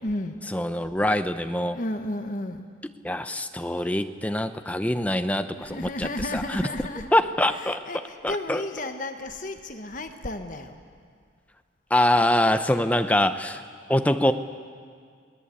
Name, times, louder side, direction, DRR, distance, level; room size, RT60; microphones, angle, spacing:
voice 1, 0.0-0.6 1.7-2.7 5.1-7.1 7.5-10.8, left 1 dB, 40° left, 6 dB, 1.3 m, -33 dB
voice 2, 0.5-1.8 3.0-6.6 7.1-7.8 8.2-8.6 11.9-13.6 13.9-14.3, left 1 dB, 5° left, 9 dB, 0.7 m, -24 dB
28.5 x 20.5 x 8.5 m, 2.1 s
head